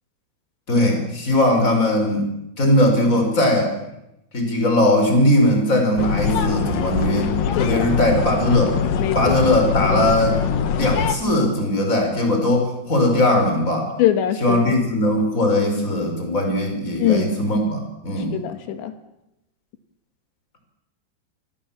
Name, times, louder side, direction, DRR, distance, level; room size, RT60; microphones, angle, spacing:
voice 1, 0.7-2.2 2.6-3.7 4.3-7.3 7.6-8.8 9.2-10.4 10.7-13.9 14.4-18.4, left 1 dB, 20° left, 4 dB, 5.2 m, -19 dB
sound 1, 6.0-11.2, left 6 dB, 60° left, 3.0 m, -23 dB
voice 2, 7.6-7.9 9.0-9.5 14.0-14.8 17.0-17.4 18.3-18.9, left 10 dB, 85° left, 9 dB, 3.8 m, -22 dB
27.5 x 25.0 x 7.5 m, 0.89 s
omnidirectional pair, 5.0 m